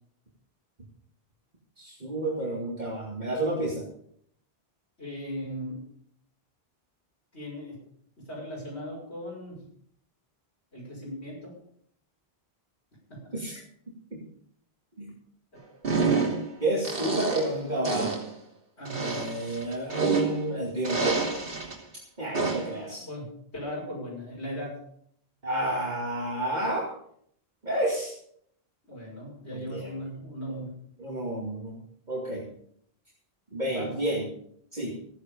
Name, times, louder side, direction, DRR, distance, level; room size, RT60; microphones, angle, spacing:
voice 1, 1.8-3.8 13.3-13.6 15.0-15.1 16.6-18.1 19.0-21.2 22.2-23.0 25.4-26.9 27.6-28.1 29.5-29.9 30.5-30.6 31.0-31.8 32.1-32.5 33.5-34.2 34.7-34.9, right 1 dB, 45° right, -3 dB, 2.6 m, -30 dB
voice 2, 5.0-5.8 7.3-7.8 8.2-9.7 10.7-11.6 13.1-13.3 18.8-19.2 22.6-24.8 28.9-30.8 33.7-34.0, equal, 85° left, -5 dB, 6.3 m, -38 dB
sound 1, 15.8-16.5 16.8-17.6 17.8-18.3 18.8-20.5 20.8-21.7 22.3-22.8, right 4 dB, 60° right, 3.0 m, -28 dB
15.0 x 10.5 x 5.3 m, 0.67 s
omnidirectional pair, 1.1 m